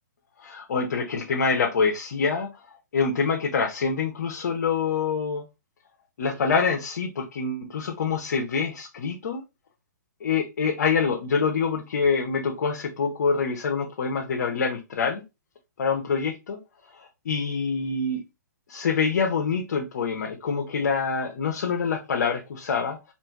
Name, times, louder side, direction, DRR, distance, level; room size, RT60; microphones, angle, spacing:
voice 1, 0.4-2.5 2.9-5.4 6.2-9.4 10.2-15.2 15.8-16.6 16.9-18.2 18.7-23.0, left 5 dB, 60° left, 1.0 m, -26 dB
4.3 x 2.6 x 4.5 m
hypercardioid pair, 155°, 10 cm